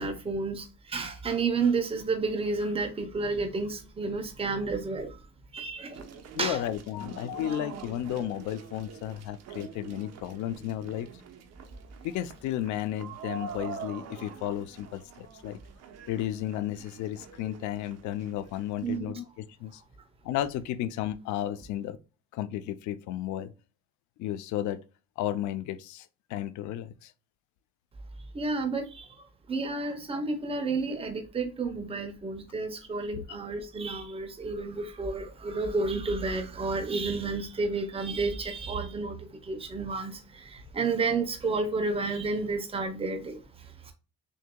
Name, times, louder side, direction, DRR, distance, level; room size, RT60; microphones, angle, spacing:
voice 1, 0.0-5.2 5.5-6.1 6.4-6.6 18.8-19.1 28.3-43.9, right 3 dB, 20° right, 0.9 m, -31 dB
sound 1, 5.9-19.0, right 6 dB, 60° right, 0.9 m, -45 dB
voice 2, 6.3-11.1 12.0-15.6 16.1-19.8 20.2-22.0 22.3-23.5 24.2-24.8 25.2-27.1 33.2-33.3, left 12 dB, 80° left, 0.6 m, -33 dB
6.4 x 2.8 x 2.2 m
cardioid pair, 130°, 29 cm